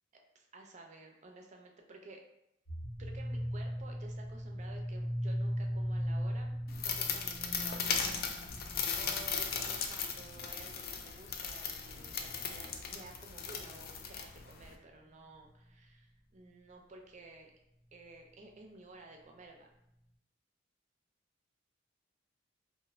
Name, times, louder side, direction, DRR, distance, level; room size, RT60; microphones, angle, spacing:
voice 1, 0.3-2.2 3.0-6.5 6.8-8.1 8.5-17.5 17.9-19.7, right 2 dB, 40° right, 2 dB, 0.4 m, -53 dB
sound 1, 2.7-13.9, equal, 80° left, 1.2 m, -39 dB
sound 2, 6.7-14.7, left 6 dB, 50° left, 0.3 m, -37 dB
2.5 x 2.4 x 3.1 m, 0.79 s
head